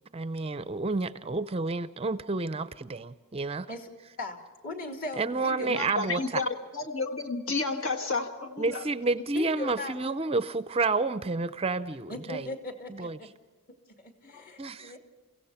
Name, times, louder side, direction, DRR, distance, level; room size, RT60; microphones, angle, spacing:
voice 1, 0.1-3.7 5.2-6.4 8.6-12.5 12.9-13.2 14.6-14.9, right 3 dB, 25° right, 13 dB, 0.5 m, -30 dB
voice 2, 4.6-5.8 9.3-10.0 12.1-13.1 14.0-15.0, left 2 dB, 40° left, 5 dB, 2.7 m, -38 dB
voice 3, 5.6-6.5 6.7-8.8 14.3-14.7, left 3 dB, 60° left, 6 dB, 1.5 m, -31 dB
30.0 x 16.5 x 5.7 m, 1.4 s
head